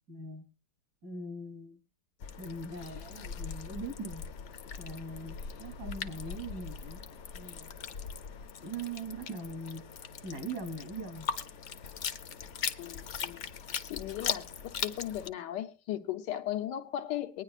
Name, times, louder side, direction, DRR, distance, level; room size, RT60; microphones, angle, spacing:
voice 1, 0.1-0.5 1.0-1.8 2.4-4.2 4.8-7.7 8.6-9.8 10.2-11.3, right 2 dB, 85° right, 3.7 m, -41 dB
sound 1, 2.2-15.3, left 7 dB, 55° left, 0.8 m, -41 dB
sound 2, 2.7-8.5, left 4 dB, 75° left, 1.5 m, -44 dB
voice 2, 12.8-13.4 13.8-17.4, left 12 dB, 90° left, 1.5 m, -37 dB
23.5 x 9.8 x 2.4 m
omnidirectional pair, 1.8 m